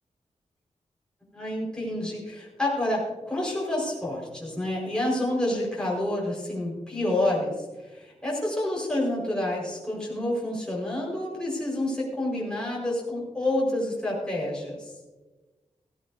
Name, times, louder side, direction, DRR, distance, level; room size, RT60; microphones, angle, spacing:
voice 1, 1.3-14.9, left 1 dB, 5° left, -4 dB, 4.8 m, -28 dB
17.0 x 15.0 x 2.7 m, 1.2 s
wide cardioid pair, 135°, 12 cm